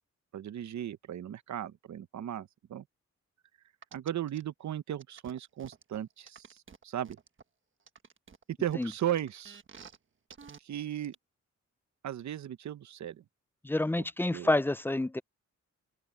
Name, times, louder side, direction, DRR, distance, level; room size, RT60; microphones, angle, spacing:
voice 1, 0.3-2.8 3.9-6.6 6.8-7.2 8.5-9.6 10.6-11.1 12.0-13.2 14.3-14.5, right 11 dB, 70° right, 0.8 m, -36 dB
sound 1, 3.8-4.4 5.0-7.4 7.9-10.0 10.3-10.6 11.0-11.1, right 6 dB, 40° right, 1.4 m, -51 dB
voice 2, 13.6-15.2, left 2 dB, 10° left, 0.3 m, -28 dB
open air
wide cardioid pair, 115°, 30 cm